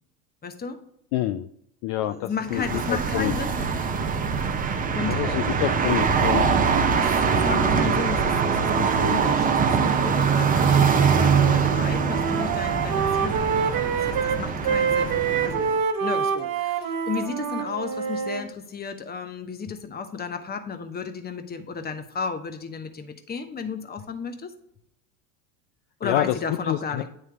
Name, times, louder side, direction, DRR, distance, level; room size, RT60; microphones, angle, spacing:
voice 1, 0.4-0.8 2.0-3.9 4.6-5.5 7.0-15.1 15.4-15.7 16.0-24.5 26.0-27.1, left 5 dB, 20° left, 8 dB, 0.9 m, -34 dB
voice 2, 1.1-1.5 1.8-2.8 3.1-3.3 5.1-6.5 26.0-26.3 26.7-27.1, left 13 dB, 50° left, 9 dB, 0.5 m, -27 dB
sound 1, 2.5-15.8, right 6 dB, 20° right, 0.6 m, -23 dB
Wind instrument woodwind instrument, 11.2-11.6 11.9-18.4, right 6 dB, 40° right, 1.1 m, -26 dB
9.5 x 3.2 x 4.6 m, 0.74 s
hypercardioid pair, 90°, 48 cm